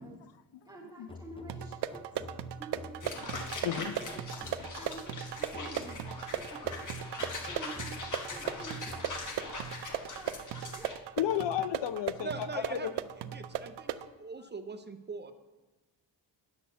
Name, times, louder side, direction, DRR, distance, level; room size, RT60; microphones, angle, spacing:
voice 1, 0.6-2.1 2.6-3.2 3.7-3.9 4.8-6.0 6.5-7.0 7.5-10.3 10.6-10.9, right 2 dB, 10° right, -4 dB, 1.1 m, -49 dB
sound 1, 1.1-5.0 5.5-9.4, left 2 dB, 15° left, 0.6 m, -49 dB
sound 2, 1.5-14.1, right 10 dB, 75° right, 0.6 m, -38 dB
sound 3, 3.0-11.0, left 3 dB, 45° left, 1.4 m, -42 dB
voice 2, 3.6-4.0 11.2-12.9, left 10 dB, 90° left, 14 dB, 0.6 m, -32 dB
voice 3, 12.2-15.3, right 3 dB, 25° right, 8 dB, 0.6 m, -42 dB
9.7 x 6.3 x 6.8 m, 1.1 s
wide cardioid pair, 170°, 42 cm